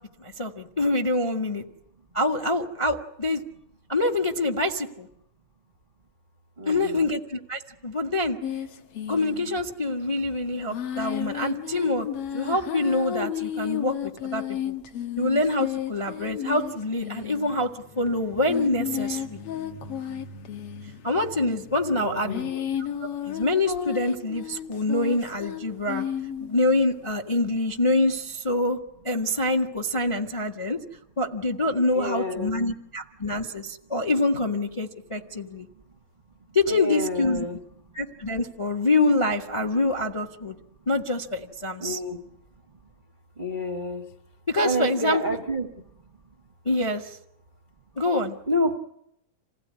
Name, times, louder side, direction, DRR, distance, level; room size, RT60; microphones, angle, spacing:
voice 1, 0.2-1.6 2.1-3.4 3.9-5.1 6.6-8.4 9.1-12.1 12.3-14.8 15.2-17.7 18.0-19.4 21.0-22.6 23.3-26.0 26.4-28.8 29.0-30.8 31.2-35.7 36.5-37.5 37.9-40.6 40.9-42.0 44.5-45.4 46.6-47.2 48.0-48.3, left 2 dB, 20° left, 5 dB, 0.7 m, -25 dB
voice 2, 6.6-7.0 21.9-22.6 31.9-32.6 36.7-37.6 41.8-42.2 43.4-44.0 44.6-45.7 48.5-48.8, equal, 35° right, 4 dB, 0.7 m, -29 dB
sound 1, 8.4-9.7 10.7-26.6, left 9 dB, 55° left, 2.1 m, -33 dB
28.0 x 17.0 x 9.6 m, 0.77 s
omnidirectional pair, 3.5 m